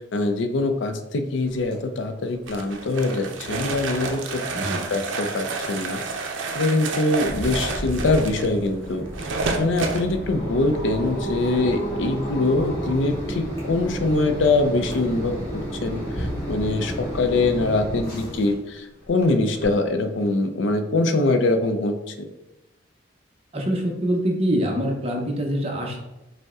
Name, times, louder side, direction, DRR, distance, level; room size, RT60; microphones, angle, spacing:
voice 1, 0.0-4.4 4.9-6.0 6.5-9.0 9.6-22.1, left 2 dB, 75° left, 7 dB, 0.5 m, -23 dB
sound 1, 1.5-20.3, equal, 50° left, 0.9 m, -37 dB
sound 2, 2.5-10.0, right 3 dB, 80° right, 0.5 m, -30 dB
voice 2, 4.5-4.8 23.5-26.0, equal, 30° right, 1 dB, 0.7 m, -24 dB
Mechanisms, 7.8-18.6, right 1 dB, 10° left, 1.4 m, -33 dB
5.2 x 2.1 x 3.5 m, 0.95 s
head